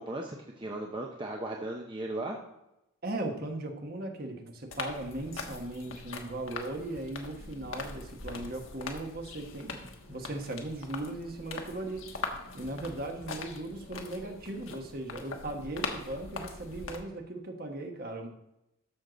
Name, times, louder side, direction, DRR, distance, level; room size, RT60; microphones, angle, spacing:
voice 1, 0.0-2.4, right 2 dB, 25° right, 0 dB, 0.7 m, -36 dB
voice 2, 3.0-18.3, right 2 dB, 45° right, 4 dB, 1.3 m, -38 dB
sound 1, 4.7-17.0, left 4 dB, 70° left, 1.2 m, -42 dB
13.0 x 6.5 x 3.9 m, 0.89 s
head